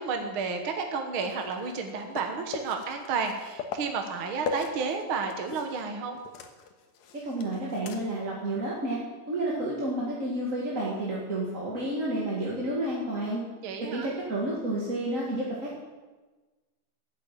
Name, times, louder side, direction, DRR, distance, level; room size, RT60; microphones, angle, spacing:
voice 1, 0.0-6.2 13.6-14.1, right 5 dB, 55° right, 4 dB, 1.7 m, -31 dB
sound 1, 1.3-5.9 6.1-8.3 8.7-8.8 11.3-11.4, left 5 dB, 70° left, 2.3 m, -40 dB
voice 2, 7.3-9.0 9.3-13.4 13.9-15.8, right 1 dB, 30° right, -4 dB, 2.1 m, -30 dB
14.0 x 8.9 x 9.1 m, 1.3 s
omnidirectional pair, 3.5 m